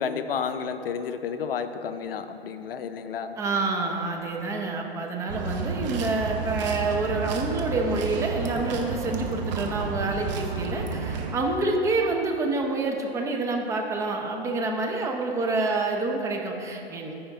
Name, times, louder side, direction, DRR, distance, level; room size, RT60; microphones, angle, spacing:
voice 1, 0.0-3.4, left 6 dB, 65° left, 10 dB, 0.6 m, -31 dB
voice 2, 3.4-17.1, right 3 dB, 10° right, 1 dB, 0.6 m, -27 dB
sound 1, 5.3-11.3, right 5 dB, 45° right, 0.9 m, -31 dB
14.0 x 5.1 x 3.5 m, 2.9 s
figure-of-eight pair, 120°, 32 cm